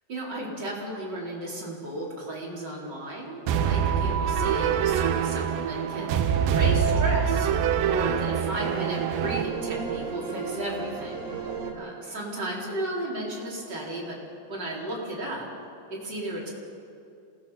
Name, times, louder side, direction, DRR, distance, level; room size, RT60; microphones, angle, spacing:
voice 1, 0.1-14.2 14.5-15.5 15.9-16.5, right 1 dB, 25° right, -4 dB, 4.0 m, -34 dB
sound 1, 3.5-9.4, right 8 dB, 80° right, 2.0 m, -25 dB
sound 2, 6.0-6.3 6.6-7.2 7.9-8.2 8.6-11.7, right 5 dB, 65° right, 4.3 m, -35 dB
27.0 x 19.0 x 5.6 m, 2.6 s
omnidirectional pair, 5.1 m